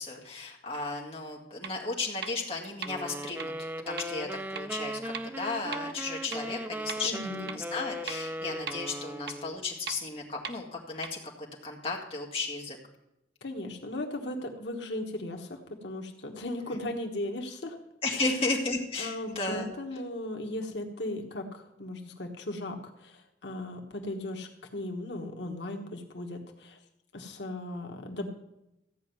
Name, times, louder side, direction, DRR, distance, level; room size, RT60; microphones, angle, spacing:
voice 1, 0.0-12.8 18.0-19.7, left 3 dB, 35° left, -1 dB, 2.1 m, -34 dB
sound 1, 1.6-1.7 2.2-2.3 2.8-2.9 3.4-3.5 4.0-4.1 4.5-4.6 5.1-5.2 5.7-5.8 6.3-6.4 6.9-7.0 7.5-7.6 8.1-8.2 8.7-8.8 9.3-9.4 9.9-10.0 10.4-10.5 11.0-11.1, right 6 dB, 70° right, 1.0 m, -37 dB
sound 2, 2.9-9.7, right 1 dB, 10° right, 0.5 m, -38 dB
voice 2, 7.0-7.5 13.4-17.8 18.1-18.3 19.0-26.8 27.1-28.3, left 1 dB, 85° left, 3 dB, 1.3 m, -37 dB
14.0 x 5.3 x 9.4 m, 0.89 s
head